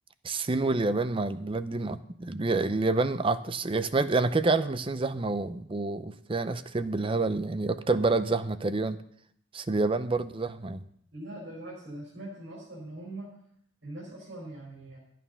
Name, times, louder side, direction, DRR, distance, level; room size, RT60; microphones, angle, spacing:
voice 1, 0.2-9.0 9.5-10.8, right 3 dB, 30° right, 12 dB, 0.5 m, -28 dB
voice 2, 11.1-13.3 13.8-15.0, right 1 dB, 70° right, -7 dB, 5.0 m, -42 dB
13.0 x 9.2 x 5.6 m, 0.68 s
head